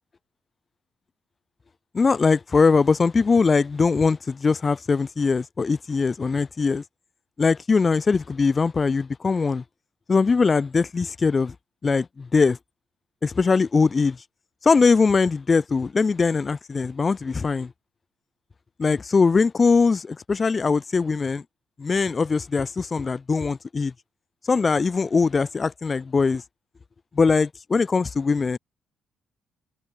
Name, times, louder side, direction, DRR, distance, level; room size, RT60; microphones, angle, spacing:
voice 1, 1.9-6.8 7.4-9.6 10.1-11.5 11.8-12.6 13.2-14.2 14.6-17.7 18.8-21.4 21.8-23.9 24.4-26.4 27.1-28.6, left 4 dB, 35° left, 5.8 m, -21 dB
cardioid pair, 90°, 0 cm